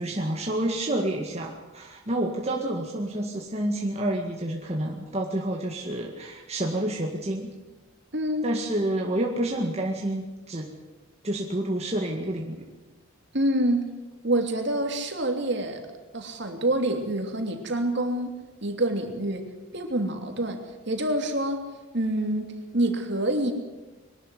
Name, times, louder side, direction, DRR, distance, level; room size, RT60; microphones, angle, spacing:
voice 1, 0.0-7.5 8.4-10.7 11.2-12.6, right 1 dB, 30° right, 0 dB, 1.9 m, -29 dB
voice 2, 8.1-8.5 13.3-13.9 14.2-15.8 16.1-18.3 18.6-19.4 19.7-21.6 21.9-23.5, right 1 dB, 55° right, 4 dB, 3.0 m, -26 dB
22.0 x 12.5 x 9.7 m, 1.1 s
head